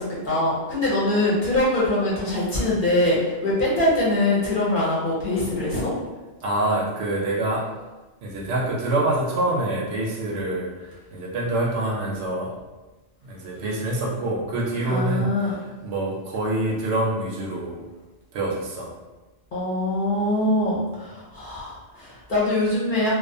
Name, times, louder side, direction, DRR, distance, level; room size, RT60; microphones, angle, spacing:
voice 1, 0.0-5.9 14.9-15.5 19.5-23.2, left 1 dB, 50° left, -7 dB, 0.8 m, -23 dB
voice 2, 6.4-7.7 8.2-10.7 11.1-12.5 13.2-15.5 15.8-17.8 18.3-18.9, right 2 dB, 70° right, -2 dB, 0.8 m, -26 dB
2.4 x 2.3 x 2.5 m, 1.2 s
omnidirectional pair, 1.3 m